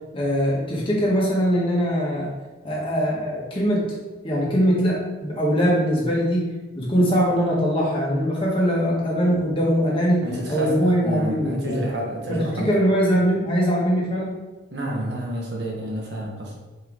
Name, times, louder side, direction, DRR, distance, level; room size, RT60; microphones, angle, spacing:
voice 1, 0.1-2.3 2.6-3.9 4.2-6.5 6.8-10.2 10.5-11.8 12.3-14.4, equal, 25° left, -5 dB, 1.9 m, -21 dB
voice 2, 10.2-12.8 14.7-16.6, right 1 dB, 60° right, -2 dB, 1.7 m, -29 dB
5.6 x 5.6 x 4.0 m, 1.2 s
head